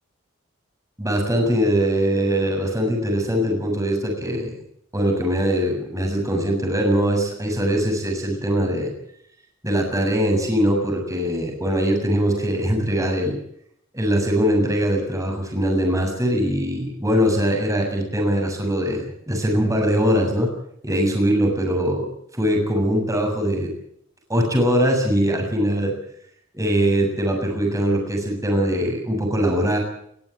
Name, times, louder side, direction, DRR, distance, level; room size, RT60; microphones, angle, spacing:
voice 1, 1.0-4.5 4.9-8.9 9.6-13.4 13.9-20.5 20.8-22.1 22.4-23.7 24.3-25.9 26.5-29.8, equal, 15° right, 1 dB, 7.1 m, -21 dB
22.0 x 15.0 x 9.3 m, 0.70 s
head